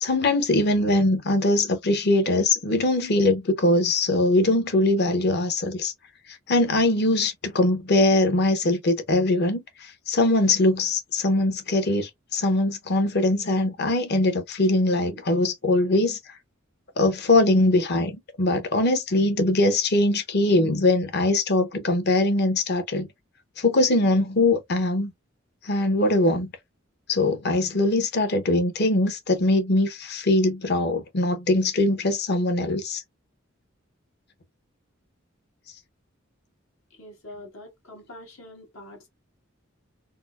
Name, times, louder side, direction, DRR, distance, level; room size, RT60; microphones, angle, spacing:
voice 1, 0.0-5.9 6.5-9.6 10.1-16.2 17.0-18.1 18.4-23.1 23.6-25.1 25.7-26.5 27.1-33.0, left 2 dB, 55° left, 0.8 m, -22 dB
voice 2, 37.0-39.1, left 1 dB, 80° left, 1.6 m, -44 dB
4.0 x 2.1 x 2.4 m
head